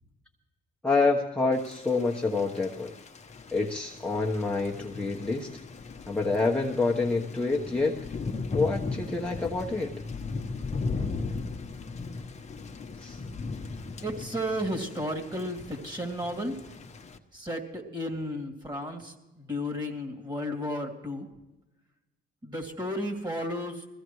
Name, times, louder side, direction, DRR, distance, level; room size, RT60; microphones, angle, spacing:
voice 1, 0.8-2.9 3.5-5.5 6.1-8.0 8.5-9.9 13.0-13.2, left 3 dB, 5° left, -3 dB, 1.1 m, -27 dB
Thunder / Rain, 1.5-17.2, left 4 dB, 35° left, 1.1 m, -38 dB
voice 2, 14.0-16.6 17.3-21.3 22.4-23.9, equal, 20° right, 3 dB, 2.8 m, -33 dB
21.5 x 15.5 x 3.1 m, 1.0 s
cardioid pair, 90°, 20 cm